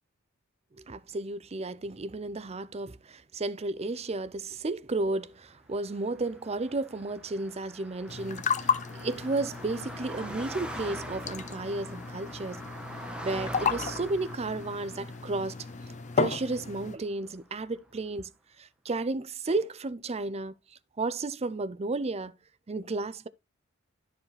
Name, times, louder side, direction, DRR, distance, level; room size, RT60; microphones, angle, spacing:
voice 1, 0.7-12.6 13.2-15.6 16.2-18.3 18.6-22.4 22.7-23.3, right 2 dB, 30° right, 0.5 m, -33 dB
Car passing by, 5.8-17.4, right 1 dB, 5° right, 1.1 m, -43 dB
sound 1, 8.1-17.0, left 5 dB, 35° left, 0.5 m, -34 dB
13.0 x 4.8 x 3.3 m
head